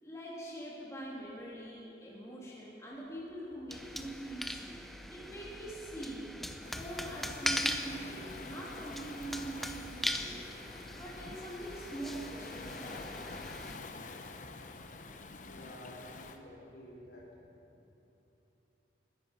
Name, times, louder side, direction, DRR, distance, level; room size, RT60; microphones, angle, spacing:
voice 1, 0.0-4.8 5.1-6.4 6.7-10.5 10.9-13.3, right 1 dB, 15° left, -5 dB, 2.6 m, -44 dB
sound 1, 3.7-13.8, equal, ahead, 0.5 m, -40 dB
Waves surf, 6.6-16.4, left 3 dB, 45° left, 0.8 m, -47 dB
voice 2, 15.4-17.3, left 1 dB, 80° left, -3 dB, 3.5 m, -51 dB
21.5 x 11.0 x 5.5 m, 2.9 s
head